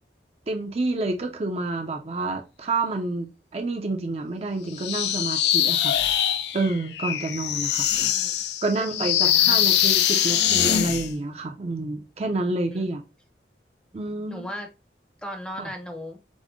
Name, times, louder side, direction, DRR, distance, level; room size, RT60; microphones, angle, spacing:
voice 1, 0.5-6.0 6.5-7.9 8.6-13.0 13.9-14.5 15.6-15.7, right 2 dB, 35° right, 0.5 m, -28 dB
sound 1, 4.8-11.1, left 10 dB, 70° left, 0.4 m, -23 dB
voice 2, 8.0-8.5 8.8-9.6 12.2-12.4 12.7-12.9 14.3-14.7 15.2-16.2, equal, 5° left, 0.6 m, -37 dB
5.0 x 2.1 x 3.5 m
head